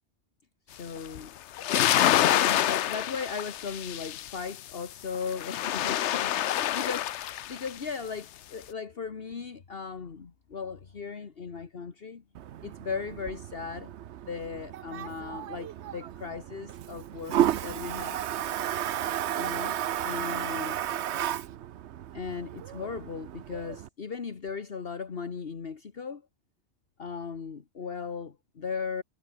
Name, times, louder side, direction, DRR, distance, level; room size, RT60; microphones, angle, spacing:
voice 1, 0.7-1.4 1.7-2.0 2.3-12.2 12.6-13.9 14.3-18.2 19.4-20.8 22.1-26.2 27.0-29.0, left 5 dB, 60° left, 1.6 m, -37 dB
sound 1, 1.1-1.2 1.6-4.6 5.1-7.7, left 12 dB, 85° left, 0.9 m, -27 dB
Toilet flush, 12.3-23.9, right 11 dB, 80° right, 1.0 m, -33 dB
omnidirectional pair, 1.1 m